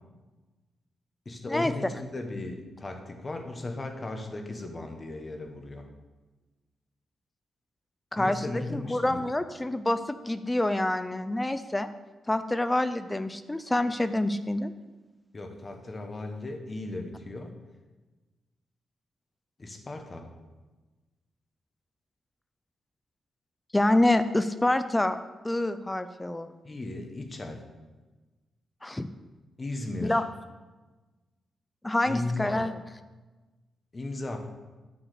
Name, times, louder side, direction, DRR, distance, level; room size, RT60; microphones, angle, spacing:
voice 1, 1.2-5.9 8.2-9.2 15.3-17.5 19.6-20.3 26.6-27.6 29.6-30.2 32.0-32.6 33.9-34.5, left 2 dB, 25° left, 4 dB, 1.2 m, -36 dB
voice 2, 8.1-11.9 12.3-14.7 23.7-25.2 25.4-26.5 28.8-29.1 30.0-30.2 31.8-32.7, left 1 dB, 10° left, 11 dB, 0.4 m, -27 dB
9.7 x 4.8 x 6.7 m, 1.2 s
cardioid pair, 130°, 0 cm